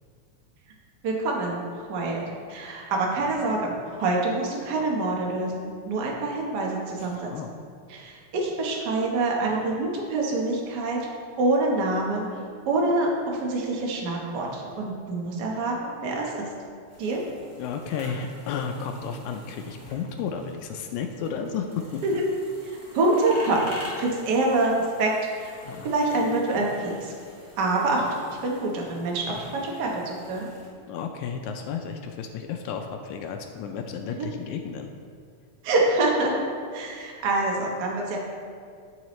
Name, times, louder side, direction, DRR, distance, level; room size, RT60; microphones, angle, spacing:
voice 1, 1.0-2.2 2.5-7.3 7.9-11.1 11.4-16.5 17.0-17.2 22.0-22.2 22.6-25.1 25.4-25.6 25.8-27.1 27.6-30.5 34.1-34.3 35.6-36.4 36.7-38.2, right 2 dB, 70° right, -1 dB, 0.9 m, -26 dB
voice 2, 7.0-7.5 17.6-22.0 25.6-25.9 30.9-34.9, left 6 dB, 85° left, 4 dB, 1.9 m, -33 dB
sound 1, 16.9-30.7, left 1 dB, 35° left, 0.8 m, -47 dB
13.0 x 4.8 x 3.1 m, 2.2 s
omnidirectional pair, 3.4 m